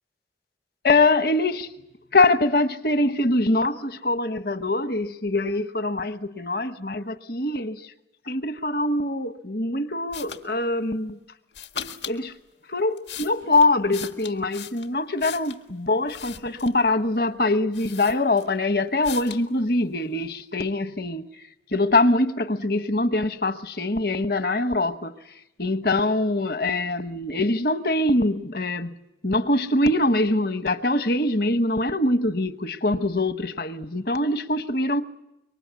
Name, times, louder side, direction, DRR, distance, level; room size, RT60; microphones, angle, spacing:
voice 1, 0.8-1.7 2.1-7.9 8.3-11.2 12.1-12.3 12.7-21.2 21.7-25.1 25.6-28.9 29.2-35.0, left 2 dB, 55° left, 1.1 m, -23 dB
sound 1, 10.1-10.4 11.5-12.2 12.8-15.6 16.1-16.9 17.4-17.5 17.7-18.6 19.0-19.5, left 8 dB, 85° left, 1.8 m, -38 dB
26.0 x 23.5 x 8.2 m
head